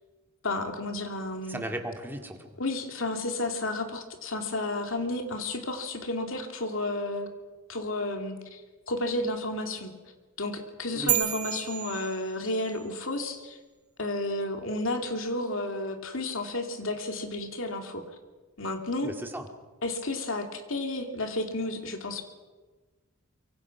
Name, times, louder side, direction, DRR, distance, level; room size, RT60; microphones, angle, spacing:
voice 1, 0.4-1.6 2.6-7.3 7.7-8.6 8.9-9.9 10.4-13.6 14.0-18.0 18.6-19.1 19.8-22.2, left 2 dB, 65° left, 5 dB, 2.7 m, -32 dB
voice 2, 1.5-2.6 10.9-11.1 19.0-19.5, right 1 dB, 10° right, 3 dB, 2.2 m, -36 dB
sound 1, 11.1-12.8, right 12 dB, 90° right, 2.2 m, -30 dB
24.5 x 23.5 x 6.1 m, 1.3 s
head